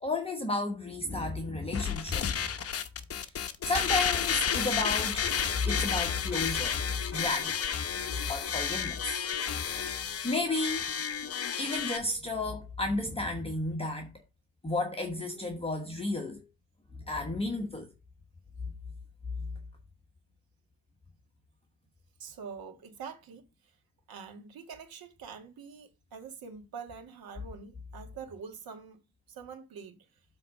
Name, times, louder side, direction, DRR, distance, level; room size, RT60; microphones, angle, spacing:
voice 1, 0.0-2.4 3.2-3.3 3.6-5.3 5.7-6.8 7.1-7.7 8.3-9.2 10.2-10.8 11.6-14.1 14.6-16.4 17.1-17.9 19.4-19.5, left 2 dB, 15° left, 1.1 m, -32 dB
sound 1, 1.7-12.0, left 7 dB, 35° left, 0.9 m, -31 dB
voice 2, 8.3-8.6 22.2-23.4 24.1-29.0 29.3-30.0, right 6 dB, 55° right, 2.0 m, -45 dB
7.6 x 3.8 x 5.5 m
cardioid pair, 115°, 44 cm